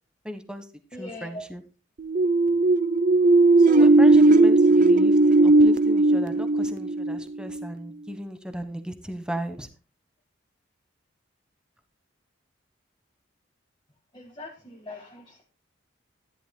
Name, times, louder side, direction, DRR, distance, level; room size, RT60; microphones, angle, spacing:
voice 1, 0.2-0.7 0.9-1.6 3.6-9.7, equal, 5° right, 8 dB, 1.2 m, -35 dB
voice 2, 0.9-1.5 14.1-15.4, left 1 dB, 25° left, -1 dB, 1.6 m, -41 dB
sound 1, 2.0-7.7, right 2 dB, 40° right, 0.6 m, -17 dB
14.0 x 11.0 x 2.2 m, 0.35 s
head